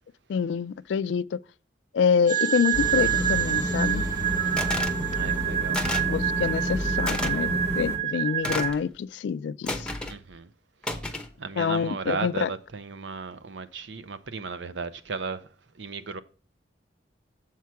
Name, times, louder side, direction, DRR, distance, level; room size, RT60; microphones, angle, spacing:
voice 1, 0.3-1.4 1.9-4.0 5.2-5.3 5.7-5.8 6.1-9.9 11.6-12.5, left 6 dB, 75° left, 0.3 m, -26 dB
sound 1, 2.3-8.7, right 11 dB, 20° right, 1.4 m, -27 dB
sound 2, 2.7-8.0, equal, 60° right, 3.2 m, -30 dB
voice 2, 4.4-5.8 10.1-10.5 11.4-15.5 15.7-16.2, right 4 dB, 80° right, 0.6 m, -35 dB
sound 3, 4.6-5.0 5.7-6.1 7.1-7.3 8.4-8.8 9.7-10.2 10.8-11.3, left 2 dB, 5° left, 0.7 m, -31 dB
7.3 x 4.7 x 5.7 m
head